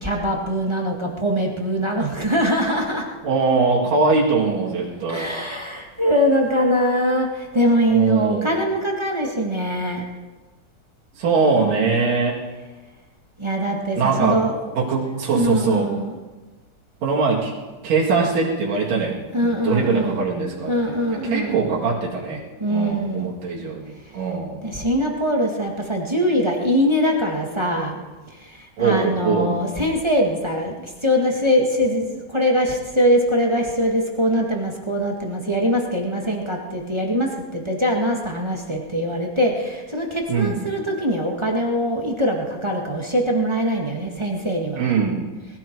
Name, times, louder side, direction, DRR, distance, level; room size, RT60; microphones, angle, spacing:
voice 1, 0.0-3.1 5.1-10.0 13.4-14.6 15.3-16.2 19.3-20.2 20.7-21.8 22.6-23.3 24.6-28.0 28.3-44.8, equal, 20° right, 0 dB, 0.8 m, -22 dB
voice 2, 3.2-5.3 7.9-8.5 11.2-12.4 14.0-14.4 14.7-15.9 17.0-17.5 17.8-19.2 19.6-20.7 21.1-22.4 22.7-24.6 28.8-29.6 40.3-40.6 44.8-45.2, right 4 dB, 85° right, -4 dB, 3.7 m, -21 dB
20.0 x 15.5 x 4.6 m, 1.2 s
omnidirectional pair, 3.7 m